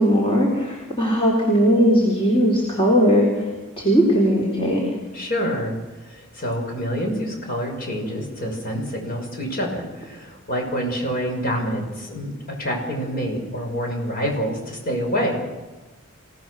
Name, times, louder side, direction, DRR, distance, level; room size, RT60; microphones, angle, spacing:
voice 1, 0.0-3.3 3.8-4.8, equal, 25° left, -1 dB, 3.9 m, -18 dB
voice 2, 5.1-5.7 6.1-12.3 12.6-15.4, equal, 45° left, 2 dB, 5.8 m, -27 dB
27.5 x 17.5 x 6.4 m, 1.2 s
head